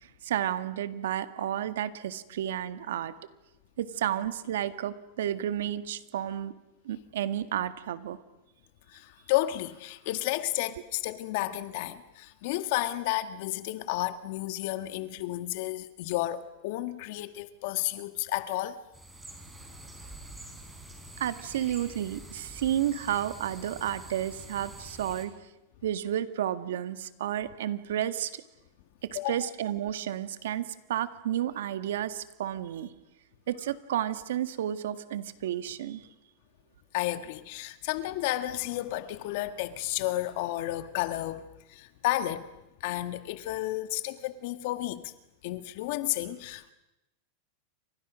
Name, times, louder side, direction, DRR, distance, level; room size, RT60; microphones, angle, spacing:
voice 1, 0.0-3.1 3.8-6.5 6.9-8.2 21.2-25.3 25.8-28.4 29.0-32.9 33.5-36.1, right 11 dB, 85° right, 1.8 m, -31 dB
voice 2, 8.9-18.8 29.2-29.5 36.9-42.5 42.8-45.1 45.4-46.7, left 15 dB, 55° left, 1.8 m, -32 dB
sound 1, 18.9-25.3, right 1 dB, 5° right, 4.5 m, -46 dB
29.0 x 25.5 x 6.4 m
supercardioid pair, 160°, 0 cm